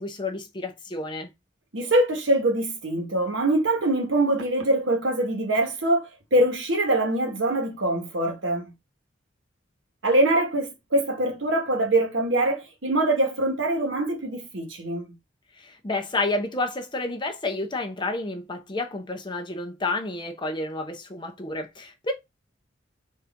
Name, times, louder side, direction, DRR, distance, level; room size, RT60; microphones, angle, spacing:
voice 1, 0.0-1.3 15.6-22.1, left 2 dB, 25° left, 0.7 m, -30 dB
voice 2, 1.7-8.6 10.0-15.0, right 1 dB, 80° right, 1.2 m, -23 dB
4.2 x 2.6 x 3.3 m
head